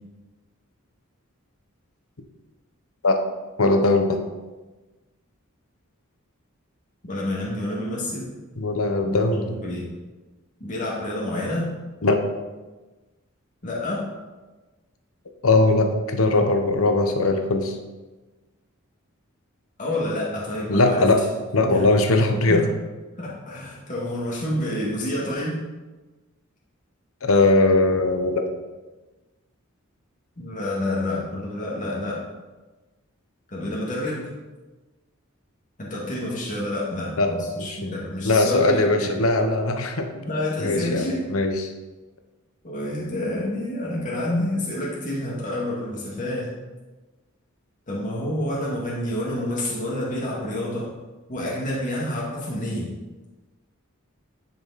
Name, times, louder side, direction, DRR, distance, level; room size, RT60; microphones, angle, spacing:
voice 1, 3.6-4.2 8.6-9.6 12.0-12.2 15.4-17.8 20.7-21.2 21.5-22.6 27.2-28.4 37.2-37.8 38.2-40.1 40.6-41.7, left 2 dB, 85° left, 5 dB, 1.1 m, -20 dB
voice 2, 7.0-8.3 9.0-9.2 9.4-9.9 10.6-11.7 13.6-14.1 19.8-21.1 21.7-21.8 22.5-22.7 23.2-25.6 30.4-32.2 33.5-34.3 35.8-39.1 40.1-41.2 42.6-46.5 47.9-50.9 51.3-52.9, left 1 dB, 40° left, -5 dB, 2.2 m, -28 dB
10.5 x 7.1 x 4.2 m, 1.2 s
head